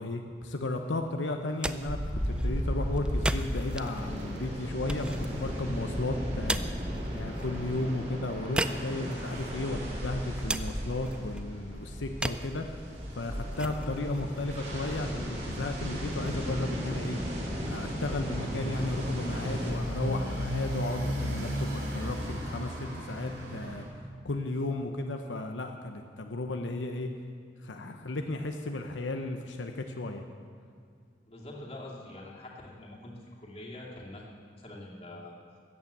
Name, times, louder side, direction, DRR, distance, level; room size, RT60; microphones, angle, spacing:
voice 1, 0.0-2.0 2.3-6.6 7.1-12.7 13.1-17.2 17.7-23.8 24.2-27.1 27.6-30.2, left 2 dB, 85° left, 5 dB, 0.8 m, -34 dB
sound 1, 1.3-15.3, right 1 dB, 5° right, 0.3 m, -39 dB
sound 2, 1.8-19.7, equal, 35° right, 2.8 m, -35 dB
Motorcycle, 17.9-23.9, equal, 60° right, 3.1 m, -34 dB
voice 2, 31.3-34.3 34.6-35.3, left 1 dB, 35° left, -3 dB, 2.5 m, -44 dB
14.0 x 8.8 x 8.0 m, 2.1 s
head